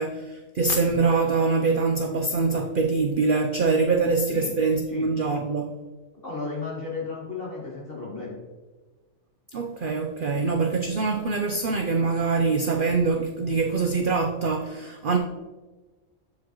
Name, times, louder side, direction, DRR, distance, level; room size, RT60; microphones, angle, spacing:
voice 1, 0.0-5.7 9.5-15.2, right 4 dB, 50° right, 3 dB, 0.7 m, -24 dB
voice 2, 6.2-8.4, left 4 dB, 45° left, -5 dB, 1.8 m, -34 dB
13.0 x 5.0 x 3.0 m, 1.2 s
omnidirectional pair, 1.4 m